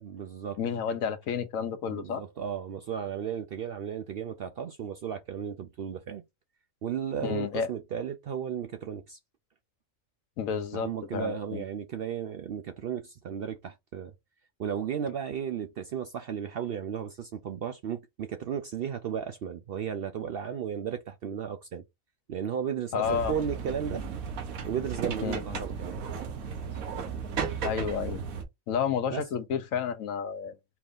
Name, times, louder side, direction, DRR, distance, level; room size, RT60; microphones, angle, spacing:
voice 1, 0.0-0.6 1.9-6.2 6.8-9.2 10.7-14.1 14.6-21.8 22.3-24.0 24.7-26.0 29.1-29.2, right 8 dB, 65° right, 0.6 m, -34 dB
voice 2, 0.6-2.2 7.2-7.7 10.4-11.6 22.9-23.4 25.2-25.4 27.6-28.2 28.7-30.6, left 7 dB, 75° left, 1.1 m, -31 dB
sound 1, 23.0-28.4, right 6 dB, 85° right, 1.3 m, -35 dB
4.6 x 2.6 x 3.5 m
omnidirectional pair, 1.4 m